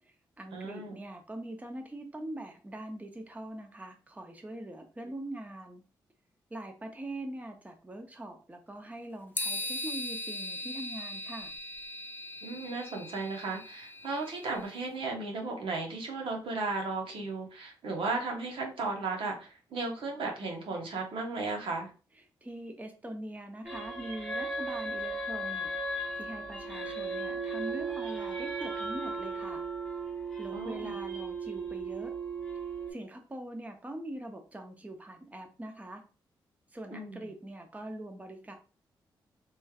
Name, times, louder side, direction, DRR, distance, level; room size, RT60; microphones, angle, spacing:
voice 1, 0.0-5.8 6.5-11.5 22.4-25.7 26.2-29.6 30.4-32.1 32.9-36.0 36.7-38.5, right 1 dB, 15° right, 4 dB, 0.7 m, -42 dB
voice 2, 0.5-1.0 12.4-21.9 30.5-30.9 36.9-37.3, right 3 dB, 75° right, 1 dB, 0.9 m, -35 dB
sound 1, 9.4-14.7, left 1 dB, 20° left, 0.5 m, -39 dB
sound 2, 23.6-32.9, right 3 dB, 5° left, 1.3 m, -36 dB
3.1 x 3.1 x 2.3 m, 0.35 s
supercardioid pair, 50°, 9 cm